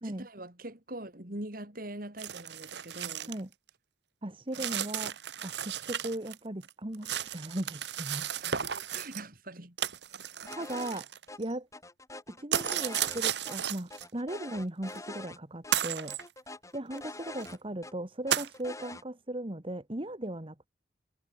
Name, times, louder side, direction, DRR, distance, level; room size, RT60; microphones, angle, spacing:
voice 1, 0.0-3.3 8.4-8.6 8.9-9.8 10.4-10.7, right 1 dB, 55° right, 4.3 m, -43 dB
sound 1, 2.2-3.4 3.7-3.8 4.5-6.4 6.6-9.2 9.8-11.5 12.5-14.0 14.9-15.0 15.7-16.2 17.0-17.1 17.4-17.5 18.3-18.5, right 9 dB, 80° right, 1.5 m, -34 dB
voice 2, 4.2-5.2 5.4-8.3 10.5-11.1 11.4-11.7 12.3-16.2 16.7-20.7, right 1 dB, 30° right, 1.6 m, -37 dB
sound 2, 10.5-11.0 11.3-11.4 11.7-13.6 13.9-15.4 15.6-15.8 16.1-17.9 18.3-19.0, left 2 dB, 20° left, 5.9 m, -44 dB
head